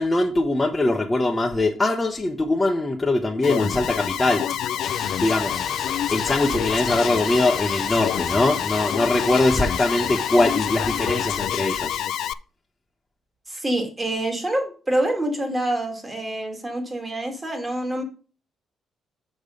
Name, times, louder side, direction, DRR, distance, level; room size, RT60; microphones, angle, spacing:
voice 1, 0.0-4.4 5.1-5.6 6.1-12.0, left 2 dB, 15° left, 0 dB, 0.9 m, -22 dB
Alarm, 3.4-12.3, left 11 dB, 75° left, 0.3 m, -27 dB
sound 1, 4.8-11.5, left 4 dB, 30° left, 1.3 m, -35 dB
voice 2, 13.5-18.0, right 1 dB, 20° right, 3 dB, 2.3 m, -26 dB
6.8 x 5.3 x 5.2 m, 0.38 s
cardioid pair, 90°, 0 cm